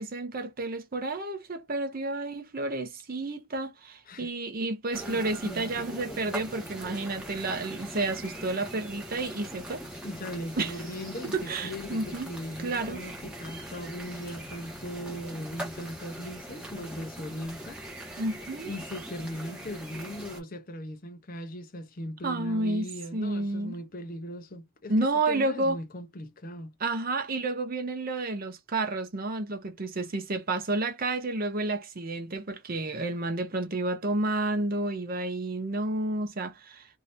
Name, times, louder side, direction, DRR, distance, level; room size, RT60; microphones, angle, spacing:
voice 1, 0.0-9.8 10.6-10.7 11.3-12.3 12.6-13.0 18.2-18.7 22.2-23.8 24.9-25.8 26.8-36.9, right 2 dB, 40° right, 0.6 m, -30 dB
voice 2, 4.9-5.9 10.0-18.2 18.6-26.7, equal, 40° left, 0.6 m, -39 dB
sound 1, 4.9-20.4, equal, 5° right, 1.1 m, -41 dB
2.7 x 2.6 x 3.3 m
head